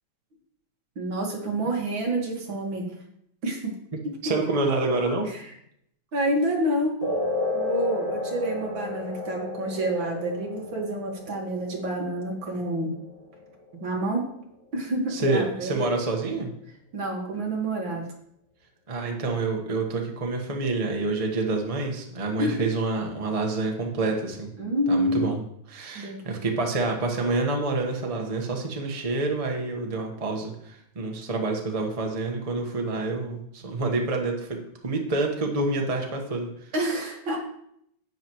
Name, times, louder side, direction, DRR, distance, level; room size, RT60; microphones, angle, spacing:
voice 1, 1.0-2.9 3.4-3.7 5.3-5.4 6.1-7.0 7.5-12.9 13.7-14.3 14.7-15.9 16.9-18.0 22.4-22.6 24.6-25.3 26.0-26.2 36.7-37.5, right 1 dB, 65° right, 0 dB, 2.5 m, -28 dB
voice 2, 4.2-5.3 15.1-16.5 18.9-24.5 24.9-25.4 25.7-36.7, right 3 dB, 20° right, 1 dB, 1.1 m, -27 dB
sound 1, 7.0-14.0, left 2 dB, 25° left, 2.3 m, -33 dB
11.0 x 9.1 x 3.1 m, 0.72 s
omnidirectional pair, 2.4 m